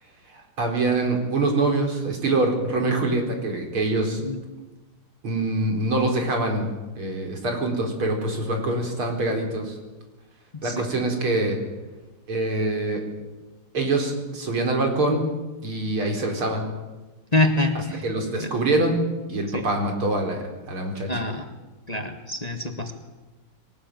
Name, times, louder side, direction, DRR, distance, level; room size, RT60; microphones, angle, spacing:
voice 1, 0.3-4.2 5.2-6.7 7.0-9.7 10.6-11.6 12.3-13.0 13.7-15.3 15.6-16.6 18.0-19.0 19.3-20.4 20.7-21.2, right 2 dB, 85° right, 3 dB, 5.1 m, -24 dB
voice 2, 17.3-18.0 18.4-18.5 19.5-19.6 21.1-21.4 21.9-22.9, left 2 dB, 20° left, 6 dB, 1.7 m, -25 dB
22.5 x 19.0 x 9.2 m, 1.2 s
omnidirectional pair, 2.3 m